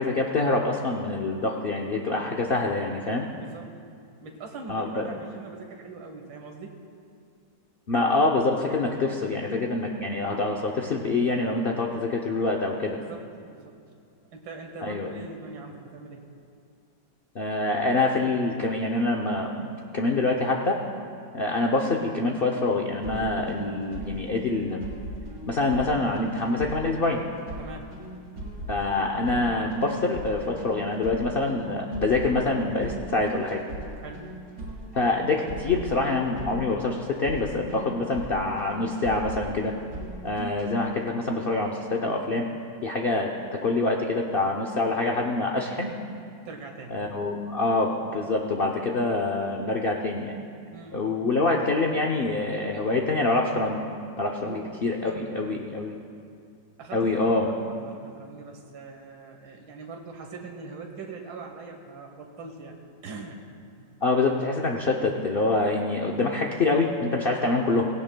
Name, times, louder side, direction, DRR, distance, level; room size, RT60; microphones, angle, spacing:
voice 1, 0.0-3.3 4.7-5.0 7.9-13.0 14.8-15.1 17.3-20.8 21.3-24.9 25.5-27.2 28.7-33.6 34.9-39.7 40.2-42.5 42.8-43.3 43.6-45.9 46.9-50.4 50.9-53.8 54.2-56.0 56.9-57.5 64.0-67.9, left 3 dB, 75° left, 0 dB, 0.5 m, -25 dB
voice 2, 3.4-3.7 4.2-6.8 13.0-13.8 14.3-16.3 27.6-28.0 34.0-34.2 46.5-47.0 50.7-51.1 54.4-54.7 55.1-55.5 56.8-62.8 63.0-63.4 63.8-64.0, right 4 dB, 90° right, 2 dB, 1.8 m, -42 dB
sound 1, 23.0-40.7, right 1 dB, 55° right, 2.5 m, -39 dB
17.5 x 16.5 x 2.2 m, 2.4 s
omnidirectional pair, 2.0 m